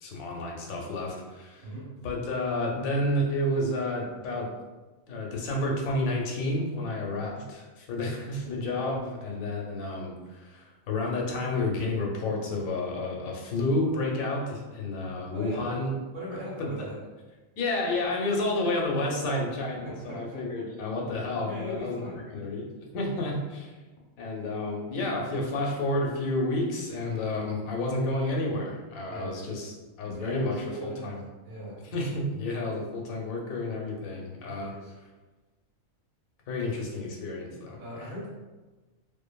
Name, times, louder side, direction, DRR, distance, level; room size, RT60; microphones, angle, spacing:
voice 1, 0.0-1.7 2.0-4.5 5.1-15.9 16.3-16.9 17.6-22.0 22.3-22.7 22.9-23.8 24.2-31.3 31.8-34.7 36.5-38.1, left 2 dB, 90° left, -1 dB, 1.0 m, -30 dB
voice 2, 15.3-15.7 16.1-17.0 19.8-20.7 21.4-22.2 29.1-29.3 30.0-31.1 31.4-31.7 34.6-34.9 37.8-38.3, equal, 90° right, -7 dB, 1.4 m, -38 dB
2.5 x 2.5 x 2.2 m, 1.2 s
omnidirectional pair, 1.4 m